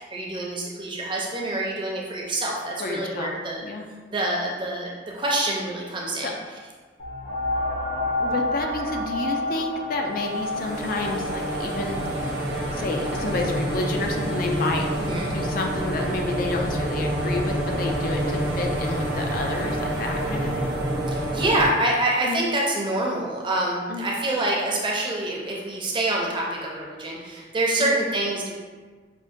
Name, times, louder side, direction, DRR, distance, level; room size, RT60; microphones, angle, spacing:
voice 1, 0.0-3.6 4.1-6.3 15.0-15.3 21.1-28.5, right 1 dB, 25° right, -2 dB, 0.5 m, -26 dB
voice 2, 2.8-3.3 3.6-3.8 6.2-6.3 8.2-12.3 12.7-14.9 15.3-20.7 22.2-22.4 23.9-24.1 27.8-27.9, left 3 dB, 50° left, 2 dB, 0.4 m, -30 dB
sound 1, 7.0-16.2 16.9-17.0, left 2 dB, 70° left, 1.2 m, -31 dB
sound 2, 10.2-21.7, right 1 dB, 80° right, 0.7 m, -27 dB
5.0 x 2.1 x 2.5 m, 1.4 s
head